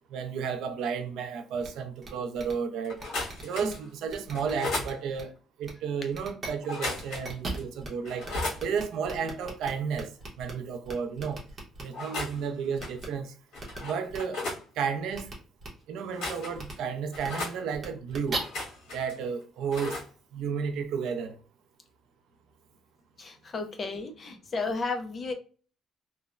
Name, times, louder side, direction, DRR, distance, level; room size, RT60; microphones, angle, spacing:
voice 1, 0.1-3.0 3.4-5.3 5.6-8.3 8.6-10.1 10.4-11.4 11.8-13.3 13.8-14.4 14.8-15.3 15.9-18.4 18.9-20.0 20.3-21.4, right 6 dB, 70° right, 0.4 m, -32 dB
sound 1, 1.6-1.7 2.0-2.1 2.4-2.5 3.0-3.7 4.1-4.5 4.8-5.2 5.6-5.7 6.1-6.5 6.9-7.9 8.2-8.3 8.6-10.5 10.8-11.8 12.8-13.1 13.6-13.8 14.1-14.2 15.1-15.3 15.6-15.7 16.5-16.7 17.1-17.3 17.7-18.4, right 2 dB, 30° right, 0.7 m, -38 dB
sound 2, 2.8-3.8 4.3-4.9 6.6-7.3 7.6-7.7 8.0-8.6 11.8-12.4 12.8-13.1 13.5-14.6 16.0-16.7 17.1-17.6 18.3-19.1 19.7-20.1, left 2 dB, 65° left, 1.4 m, -35 dB
voice 2, 23.2-25.3, left 3 dB, 25° left, 0.4 m, -33 dB
3.1 x 2.0 x 2.3 m
cardioid pair, 180°, 0 cm